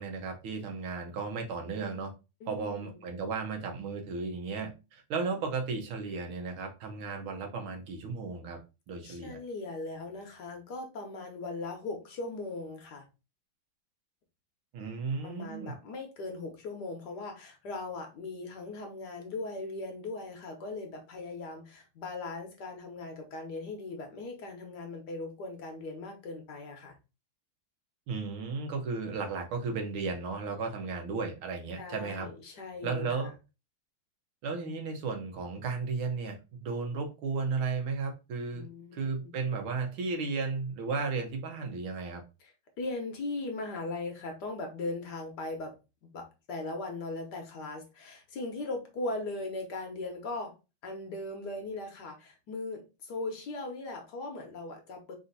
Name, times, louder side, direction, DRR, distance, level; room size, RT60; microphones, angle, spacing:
voice 1, 0.0-2.1 2.5-8.6 8.9-9.4 14.7-15.7 28.1-32.3 32.8-33.3 34.4-38.7 38.9-42.2, right 4 dB, 85° right, 1.8 m, -34 dB
voice 2, 2.4-3.0 9.0-13.0 15.2-27.0 31.8-33.3 38.5-39.3 42.4-42.5 42.8-45.8 46.0-50.5 50.8-55.1, left 2 dB, 60° left, 1.3 m, -39 dB
4.2 x 2.7 x 3.8 m
omnidirectional pair, 2.3 m